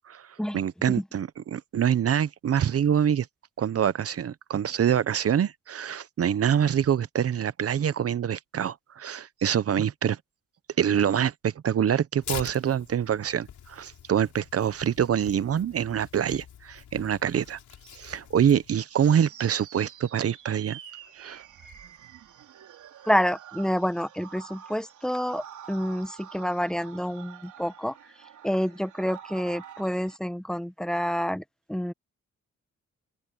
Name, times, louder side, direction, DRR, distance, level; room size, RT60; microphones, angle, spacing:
voice 1, 0.5-3.3 3.6-10.2 10.8-17.6 17.9-20.8 21.2-21.4, right 9 dB, 55° right, 0.8 m, -25 dB
Tearing, 12.2-18.7, left 10 dB, 80° left, 7.1 m, -44 dB
sound 1, 18.9-30.2, right 9 dB, 85° right, 4.1 m, -47 dB
voice 2, 23.1-27.9 28.4-31.4 31.7-31.9, equal, ahead, 1.2 m, -28 dB
open air
cardioid pair, 100°, 29 cm